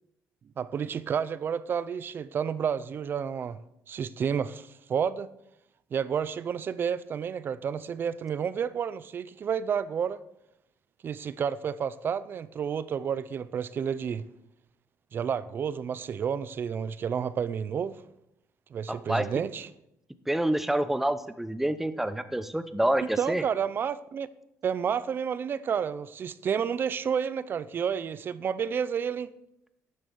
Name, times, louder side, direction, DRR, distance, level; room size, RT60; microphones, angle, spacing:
voice 1, 0.6-3.6 3.9-5.3 5.9-10.2 11.0-14.2 15.1-17.9 18.7-19.7 23.2-24.3 24.6-29.3, right 7 dB, 40° right, 0.6 m, -30 dB
voice 2, 18.9-19.3 20.3-23.4, right 1 dB, 5° right, 0.8 m, -27 dB
12.0 x 7.7 x 7.1 m
cardioid pair, 135°, 6 cm